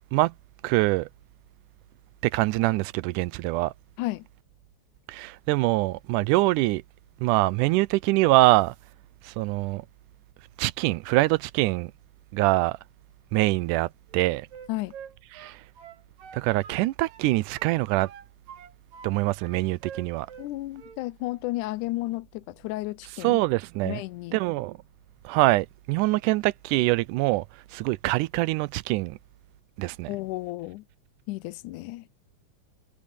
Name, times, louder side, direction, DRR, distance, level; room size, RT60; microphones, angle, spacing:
voice 1, 0.6-1.1 2.2-3.7 5.1-6.8 7.2-8.8 9.2-9.9 10.6-11.9 12.3-12.8 13.3-14.5 15.4-15.6 16.3-18.1 19.0-20.3 23.2-24.0 24.3-24.8 25.2-27.5 27.7-29.2 29.8-30.1, right 19 dB, 85° right, 2.1 m, -24 dB
Wind instrument woodwind instrument, 14.1-17.3 17.5-19.1 19.4-20.5 20.7-21.0, right 7 dB, 70° right, 2.9 m, -45 dB
voice 2, 20.4-23.4 23.8-24.4 30.1-30.9 31.3-32.1, left 18 dB, 85° left, 2.1 m, -33 dB
omnidirectional pair, 3.6 m